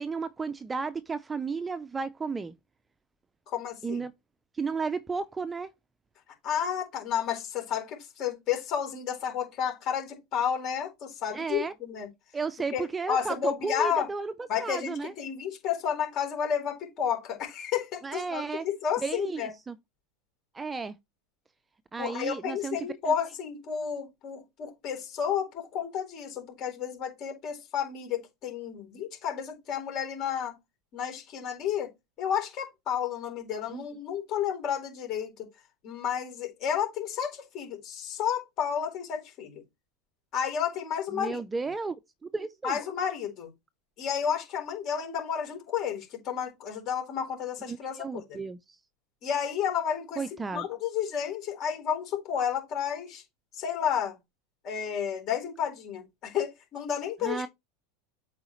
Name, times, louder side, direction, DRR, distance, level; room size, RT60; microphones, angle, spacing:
voice 1, 0.0-2.5 3.8-4.1 4.6-5.7 11.3-11.7 12.3-14.3 14.6-15.1 18.0-18.7 19.0-19.8 20.5-21.0 21.9-22.8 23.1-23.2 33.7-33.9 41.1-42.0 42.2-42.8 47.7-48.8 50.2-50.7 57.2-57.5, right 4 dB, 15° right, 0.5 m, -33 dB
voice 2, 3.5-4.0 6.4-12.1 12.7-14.1 14.5-19.5 22.0-30.6 30.9-31.9 32.2-35.5 35.8-39.6 40.3-41.4 42.6-43.5 44.0-48.4 49.2-50.2 50.5-53.2 53.5-54.2 54.6-57.5, left 8 dB, 40° left, 3.9 m, -31 dB
7.9 x 4.8 x 3.1 m
supercardioid pair, 135°, 0 cm